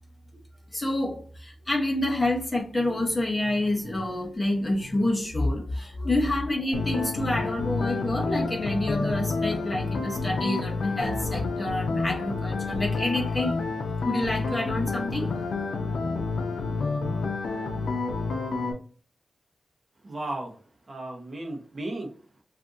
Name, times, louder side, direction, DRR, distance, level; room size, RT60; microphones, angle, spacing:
voice 1, 0.7-13.6 14.0-15.4, left 1 dB, 20° left, 0.8 m, -28 dB
sound 1, 6.7-18.7, left 3 dB, 85° left, 0.5 m, -29 dB
voice 2, 20.0-22.4, right 2 dB, 35° right, 0.8 m, -36 dB
2.6 x 2.5 x 3.6 m
wide cardioid pair, 135°, 0 cm